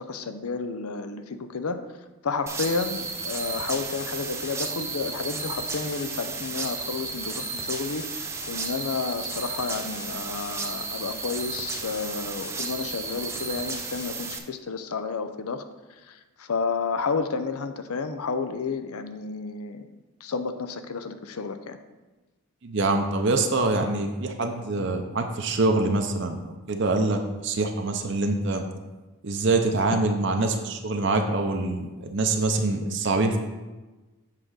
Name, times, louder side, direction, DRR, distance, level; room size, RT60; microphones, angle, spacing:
voice 1, 0.0-1.8 2.2-15.6 15.9-19.9 20.2-21.8, left 4 dB, 85° left, 9 dB, 0.6 m, -31 dB
sound 1, 2.5-14.4, right 4 dB, 10° right, 0.5 m, -33 dB
voice 2, 22.6-28.6 29.2-33.4, right 2 dB, 55° right, 5 dB, 0.6 m, -25 dB
7.4 x 3.8 x 6.3 m, 1.2 s
head